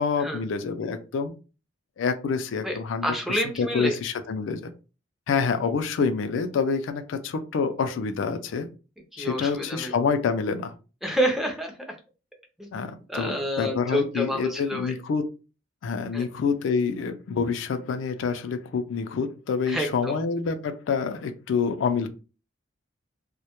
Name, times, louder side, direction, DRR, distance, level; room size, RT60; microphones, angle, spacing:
voice 1, 0.0-1.3 2.0-4.6 5.3-8.7 9.2-10.7 12.7-15.2 15.8-22.1, left 5 dB, 70° left, 8 dB, 0.3 m, -27 dB
voice 2, 3.0-4.0 9.1-9.9 11.0-12.0 12.6-12.7 13.1-14.9 16.1-16.2 19.7-20.1, equal, ahead, 2 dB, 0.4 m, -28 dB
2.1 x 2.0 x 2.8 m, 0.33 s
head